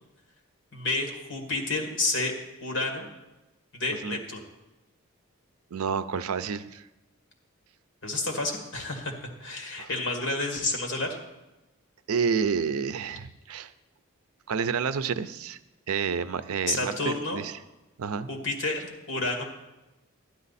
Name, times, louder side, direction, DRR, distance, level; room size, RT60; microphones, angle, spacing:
voice 1, 0.7-2.3 2.6-3.1 3.7-4.4 8.0-9.1 9.4-11.1 16.7-17.4 18.3-19.4, left 2 dB, 55° left, 3 dB, 1.9 m, -30 dB
voice 2, 5.7-6.8 9.8-9.9 12.1-13.7 14.5-15.6 15.9-17.5 18.0-18.3, right 6 dB, 80° right, 13 dB, 0.5 m, -29 dB
12.0 x 10.5 x 4.2 m, 1.0 s
head